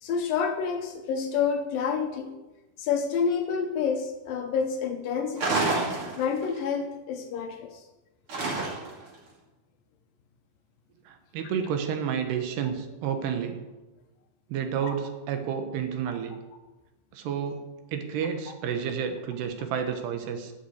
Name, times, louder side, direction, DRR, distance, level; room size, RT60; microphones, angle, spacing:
voice 1, 0.0-2.3 2.8-5.6 6.2-7.7 14.8-15.0 18.5-18.6, left 6 dB, 70° left, 5 dB, 2.2 m, -28 dB
sound 1, 5.4-6.6 8.3-9.1, right 3 dB, 35° right, 2.7 m, -28 dB
voice 2, 11.1-13.6 14.5-16.3 17.1-17.6 17.9-20.5, right 7 dB, 75° right, 6 dB, 3.1 m, -30 dB
11.0 x 8.7 x 7.8 m, 1.1 s
omnidirectional pair, 5.1 m